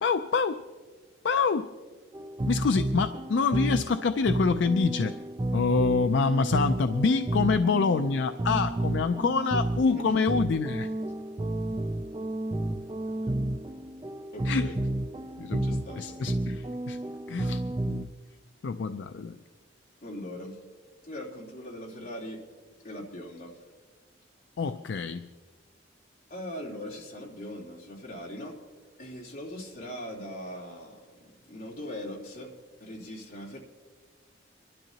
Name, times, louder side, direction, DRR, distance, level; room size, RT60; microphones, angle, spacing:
voice 1, 0.0-0.6 1.2-1.7 2.5-5.2 5.5-10.9 14.4-14.7 15.4-15.7 16.0-17.0 17.3-18.1 18.6-19.4 24.6-25.3, left 4 dB, 75° left, 10 dB, 0.4 m, -26 dB
sound 1, 2.1-18.1, right 1 dB, 20° right, 0.3 m, -31 dB
voice 2, 14.3-14.8 15.6-16.4 20.0-20.6 21.0-22.4 22.8-23.6 26.3-28.6 29.0-32.5 32.8-33.6, left 1 dB, 50° left, -5 dB, 3.1 m, -40 dB
25.5 x 12.0 x 2.9 m, 1.5 s
head